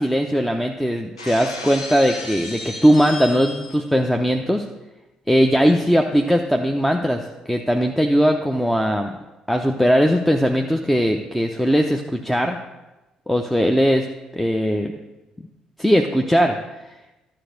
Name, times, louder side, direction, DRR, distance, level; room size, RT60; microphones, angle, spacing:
voice 1, 0.0-4.7 5.3-9.1 9.5-12.6 13.3-14.1 14.3-14.9 15.8-16.6, equal, 5° left, 3 dB, 0.7 m, -19 dB
Shatter, 1.2-3.9, left 2 dB, 85° left, 0.8 m, -34 dB
12.0 x 4.8 x 6.5 m, 1.0 s
figure-of-eight pair, 45°, 3 cm